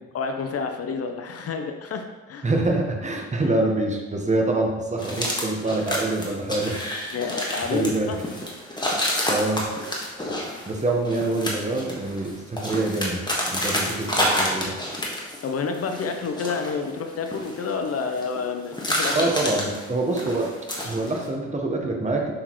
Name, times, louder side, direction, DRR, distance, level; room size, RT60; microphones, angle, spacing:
voice 1, 0.1-2.5 7.1-8.2 15.4-19.3, left 5 dB, 50° left, 6 dB, 0.7 m, -29 dB
voice 2, 2.4-6.8 7.1-7.2 7.7-8.1 8.7-8.9 9.3-9.7 10.7-13.2 13.5-14.7 19.1-20.5 20.8-22.3, right 2 dB, 25° right, 1 dB, 1.2 m, -25 dB
sound 1, 5.0-15.5 15.7-18.4 18.7-21.3, left 1 dB, 15° left, 1.6 m, -29 dB
6.3 x 6.2 x 3.1 m, 1.2 s
cardioid pair, 90°, 30 cm